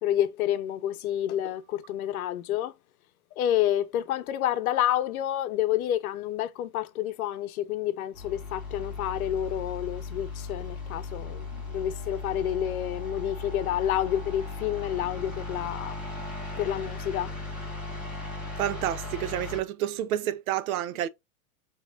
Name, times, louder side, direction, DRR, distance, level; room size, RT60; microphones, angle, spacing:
voice 1, 0.0-2.7 3.4-16.0 16.6-17.3, left 11 dB, 90° left, 0.7 m, -29 dB
sound 1, 8.1-19.6, left 3 dB, 5° right, 0.5 m, -37 dB
voice 2, 18.6-21.1, right 12 dB, 85° right, 0.6 m, -29 dB
3.5 x 3.0 x 3.4 m
supercardioid pair, 170°, 41 cm